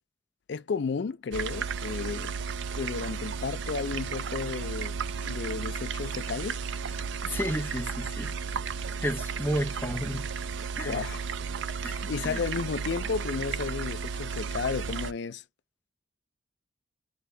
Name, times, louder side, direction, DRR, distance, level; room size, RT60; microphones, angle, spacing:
voice 1, 0.5-2.3 2.8-4.9 5.2-6.6 10.8-11.2 12.1-15.4, left 5 dB, 55° left, 0.4 m, -33 dB
sound 1, 1.3-15.1, right 6 dB, 60° right, 0.4 m, -34 dB
voice 2, 7.2-8.3 9.0-10.3 10.7-11.0 11.8-12.4, equal, 10° left, 0.6 m, -32 dB
3.9 x 2.7 x 3.8 m
head